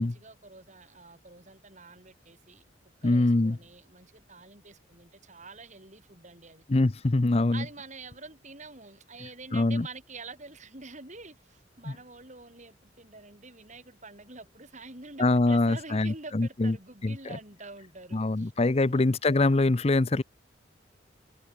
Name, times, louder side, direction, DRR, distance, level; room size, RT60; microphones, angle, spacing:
voice 1, 0.0-2.6 3.0-6.7 7.5-18.5 18.9-19.1, right 3 dB, 40° right, 7.0 m, -47 dB
voice 2, 3.0-3.6 6.7-7.6 9.5-9.9 15.2-16.7 17.0-17.2 18.1-20.2, left 2 dB, 30° left, 0.6 m, -24 dB
head